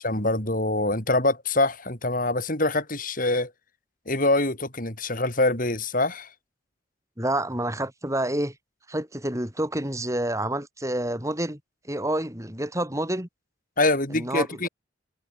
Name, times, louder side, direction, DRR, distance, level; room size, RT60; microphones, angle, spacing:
voice 1, 0.0-3.5 4.1-6.3 13.8-14.7, left 2 dB, 45° left, 7.6 m, -24 dB
voice 2, 7.2-8.5 8.9-11.6 11.8-13.3 14.1-14.7, right 1 dB, 15° right, 6.3 m, -28 dB
head